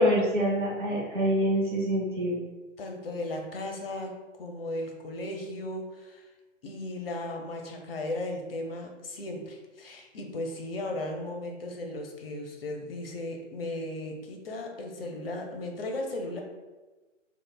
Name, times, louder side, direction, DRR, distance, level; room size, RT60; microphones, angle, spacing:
voice 1, 0.0-2.4, equal, 40° right, -4 dB, 0.8 m, -25 dB
voice 2, 2.8-6.3 6.6-16.4, left 1 dB, 50° left, 2 dB, 0.5 m, -36 dB
3.1 x 2.1 x 2.2 m, 1.2 s
figure-of-eight pair, 130°, 38 cm